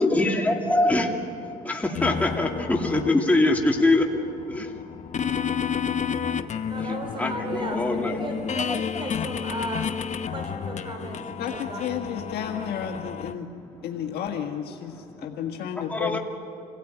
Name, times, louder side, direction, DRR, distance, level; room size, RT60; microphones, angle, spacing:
voice 1, 0.0-4.1 4.3-6.7 7.2-8.3 11.1-11.4 14.9-15.3 15.7-16.2, left 2 dB, 10° left, 0 dB, 2.4 m, -25 dB
sound 1, 1.9-13.3, left 7 dB, 45° left, 1.0 m, -31 dB
voice 2, 6.7-9.9 10.3-13.0, right 2 dB, 30° right, 4 dB, 5.3 m, -36 dB
voice 3, 11.4-13.5 13.8-16.2, left 9 dB, 70° left, 2 dB, 1.6 m, -32 dB
28.0 x 17.5 x 9.1 m, 2.5 s
cardioid pair, 110°, 17 cm